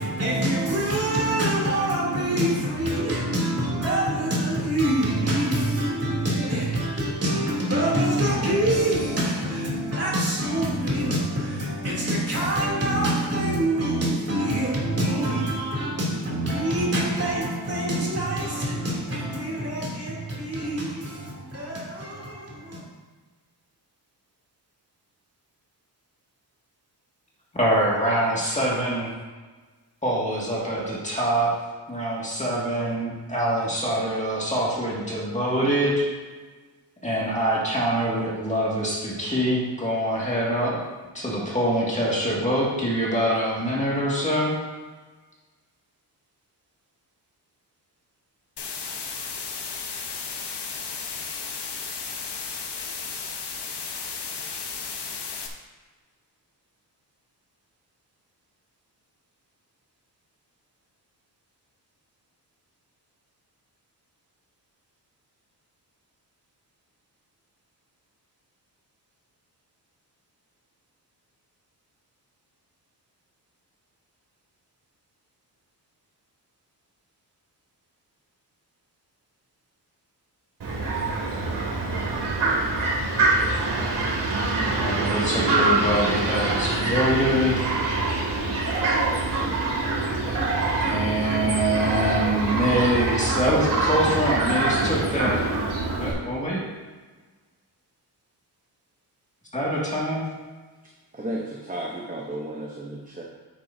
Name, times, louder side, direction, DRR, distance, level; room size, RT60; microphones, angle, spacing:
voice 1, 0.0-22.8, right 1 dB, 35° right, 2.9 m, -25 dB
voice 2, 27.6-29.1 30.0-31.5 31.9-36.1 37.0-40.8 41.1-44.5 84.8-87.7 90.8-95.4 96.0-96.6 99.5-100.2, equal, 15° left, 2.0 m, -24 dB
sound 1, 48.6-55.5, left 5 dB, 75° left, 1.1 m, -34 dB
Fowl, 80.6-96.1, right 3 dB, 75° right, 2.6 m, -25 dB
voice 3, 101.1-103.2, right 1 dB, 20° right, 0.8 m, -33 dB
9.1 x 9.0 x 2.7 m
wide cardioid pair, 150°, 41 cm